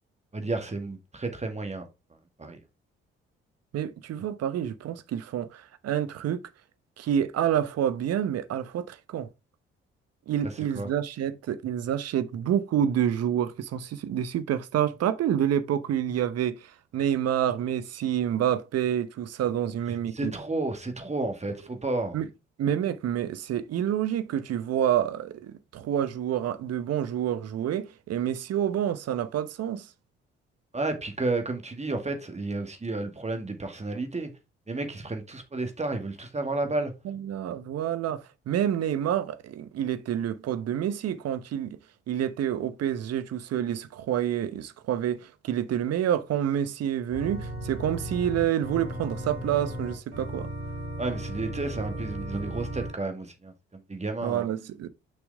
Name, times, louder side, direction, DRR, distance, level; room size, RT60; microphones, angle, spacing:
voice 1, 0.3-1.8 2.4-2.6 10.7-10.9 20.1-22.2 30.7-34.3 34.7-36.9 51.0-54.5, right 2 dB, 20° right, 2.1 m, -31 dB
voice 2, 3.7-6.4 7.0-9.3 10.3-20.3 22.1-22.3 22.6-29.9 37.0-41.8 42.1-50.5 54.2-54.9, right 10 dB, 50° right, 0.9 m, -28 dB
Organ, 47.1-52.9, right 1 dB, 80° right, 3.4 m, -35 dB
6.9 x 6.1 x 3.6 m
figure-of-eight pair, 40°, 31 cm